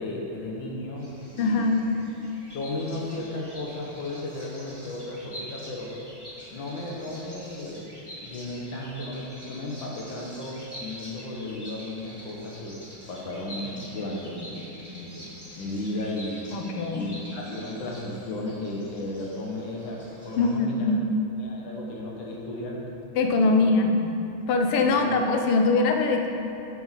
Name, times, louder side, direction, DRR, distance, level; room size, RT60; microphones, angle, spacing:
voice 1, 0.0-1.8 2.5-6.0 6.5-7.8 8.2-12.8 13.1-14.6 14.9-15.3 15.5-16.5 16.9-20.9 21.4-22.8 23.4-23.6 24.8-25.1, left 1 dB, 65° left, -2 dB, 1.6 m, -34 dB
Bird vocalization bird call bird song, 1.0-20.5, equal, 15° left, 1.2 m, -45 dB
voice 2, 1.4-1.9 16.5-17.2 20.4-21.0 23.2-24.1 24.5-26.3, left 3 dB, 85° left, 4 dB, 1.6 m, -22 dB
8.4 x 5.9 x 4.1 m, 2.8 s
omnidirectional pair, 2.4 m